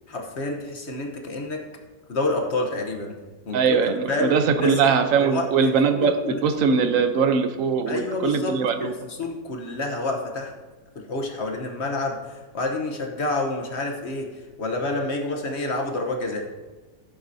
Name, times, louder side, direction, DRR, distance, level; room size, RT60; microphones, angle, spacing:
voice 1, 0.1-1.6 2.1-3.2 3.5-3.8 4.1-5.7 6.0-6.4 7.9-10.5 10.9-14.3 14.6-16.5, left 2 dB, 45° left, 2 dB, 1.0 m, -28 dB
voice 2, 3.5-8.9, right 5 dB, 60° right, 8 dB, 0.9 m, -21 dB
15.0 x 7.9 x 2.7 m, 1.3 s
omnidirectional pair, 2.1 m